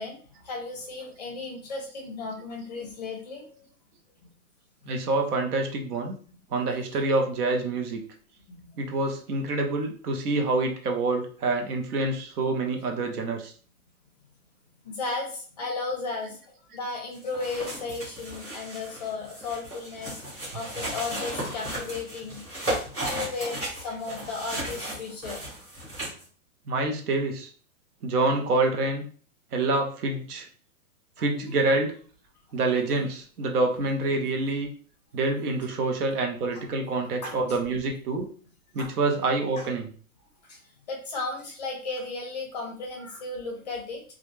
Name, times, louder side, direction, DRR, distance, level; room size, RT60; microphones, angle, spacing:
voice 1, 0.0-3.7 4.8-4.9 6.3-6.4 8.5-8.6 14.8-20.2 20.5-22.4 23.1-25.4 31.3-31.6 32.5-32.6 36.5-36.6 37.2-37.4 38.8-38.9 39.6-39.7 40.4-44.0, left 3 dB, 30° left, 1 dB, 0.4 m, -35 dB
voice 2, 4.9-6.2 6.5-8.0 8.8-13.5 26.7-27.5 28.0-29.1 29.5-30.5 31.2-31.9 32.5-34.7 35.1-38.3 38.7-39.9, right 3 dB, 85° right, 3 dB, 0.8 m, -26 dB
sound 1, 17.1-26.2, right 1 dB, 15° right, 1.0 m, -35 dB
2.4 x 2.1 x 3.1 m, 0.43 s
hypercardioid pair, 165°, 44 cm